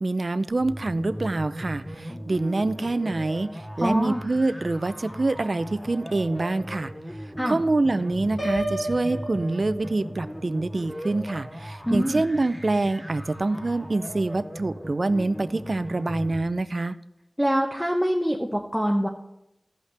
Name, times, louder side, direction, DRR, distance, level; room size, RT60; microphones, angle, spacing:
voice 1, 0.0-1.8 2.3-3.5 3.8-6.9 7.5-16.9, right 2 dB, 55° right, 12 dB, 0.4 m, -25 dB
sound 1, 0.5-16.5, equal, 15° left, 1.8 m, -38 dB
voice 2, 3.8-4.2 7.4-7.6 11.9-12.2 17.4-19.1, equal, ahead, 0 dB, 0.9 m, -24 dB
Piano, 8.4-10.3, right 1 dB, 60° left, 2.5 m, -31 dB
15.0 x 5.6 x 3.4 m, 0.85 s
wide cardioid pair, 70°, 0 cm